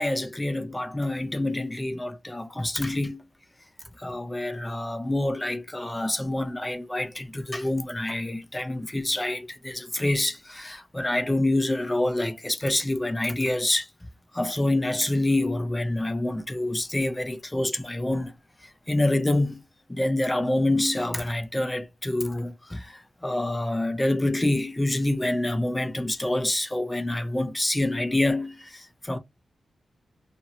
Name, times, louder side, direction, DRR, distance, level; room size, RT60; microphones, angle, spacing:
voice 1, 0.0-3.2 4.0-13.9 14.3-18.3 18.6-19.6 19.9-29.2, left 1 dB, 10° left, 0.4 m, -27 dB
2.7 x 2.5 x 2.8 m
wide cardioid pair, 150°, 0 cm